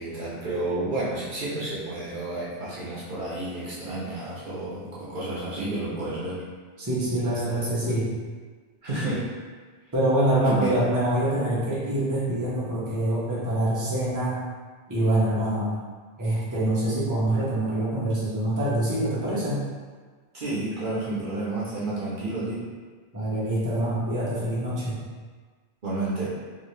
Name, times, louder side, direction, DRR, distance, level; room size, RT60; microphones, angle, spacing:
voice 1, 0.0-6.4 7.4-7.7 8.8-9.2 10.4-10.8 20.3-22.6 25.8-26.3, right 2 dB, 55° right, -8 dB, 1.0 m, -30 dB
voice 2, 6.8-8.1 9.9-14.4 14.9-15.7 16.2-19.6 23.1-25.0, right 1 dB, 20° right, -9 dB, 0.8 m, -25 dB
3.0 x 2.8 x 3.2 m, 1.5 s
omnidirectional pair, 1.0 m